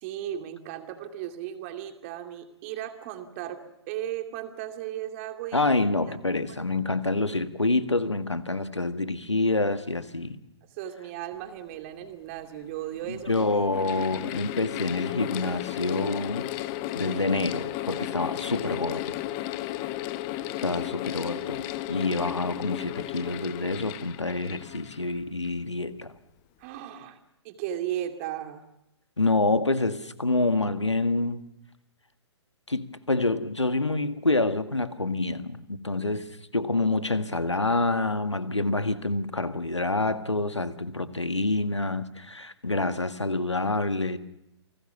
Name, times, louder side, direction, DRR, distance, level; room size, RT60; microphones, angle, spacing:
voice 1, 0.0-5.7 6.1-6.2 6.5-6.7 10.6-13.5 26.6-27.2 27.4-28.6, right 11 dB, 30° right, 7 dB, 2.5 m, -36 dB
voice 2, 5.5-10.4 13.1-16.5 17.0-19.2 20.6-21.6 21.9-26.1 29.2-31.4 32.7-36.3 36.5-44.2, left 2 dB, 80° left, 11 dB, 1.8 m, -27 dB
Mechanical fan, 12.0-12.1 13.0-25.6, left 15 dB, 25° left, 1.0 m, -34 dB
28.5 x 19.5 x 7.1 m, 0.86 s
figure-of-eight pair, 125°, 15 cm